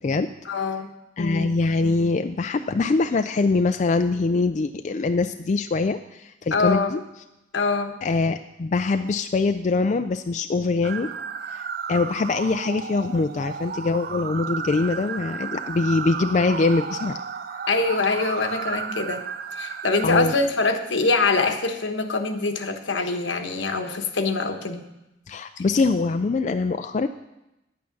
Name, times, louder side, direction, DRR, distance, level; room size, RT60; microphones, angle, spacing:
voice 1, 0.5-0.9 1.2-1.6 6.5-7.0 7.5-8.0 17.7-19.2 19.5-24.8, left 3 dB, 80° left, 7 dB, 1.1 m, -24 dB
voice 2, 1.2-7.0 8.0-11.1 11.5-11.6 11.9-17.2 20.0-20.3 25.3-27.1, left 3 dB, 40° left, 8 dB, 0.3 m, -23 dB
sound 1, 10.8-20.1, right 6 dB, 50° right, 0.5 m, -33 dB
10.5 x 8.6 x 5.9 m, 0.93 s
head